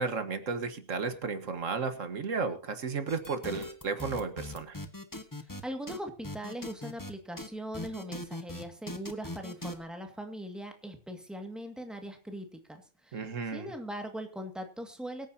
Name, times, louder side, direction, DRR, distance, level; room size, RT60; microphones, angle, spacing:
voice 1, 0.0-4.8 13.1-13.7, right 4 dB, 90° right, 9 dB, 1.9 m, -33 dB
sound 1, 3.1-5.6 5.9-6.0 6.2-7.1 7.4-7.5 7.7-9.7, left 1 dB, 15° left, 1.3 m, -40 dB
voice 2, 5.4-15.3, equal, ahead, 5 dB, 1.9 m, -41 dB
23.5 x 9.2 x 2.8 m, 0.35 s
omnidirectional pair, 1.3 m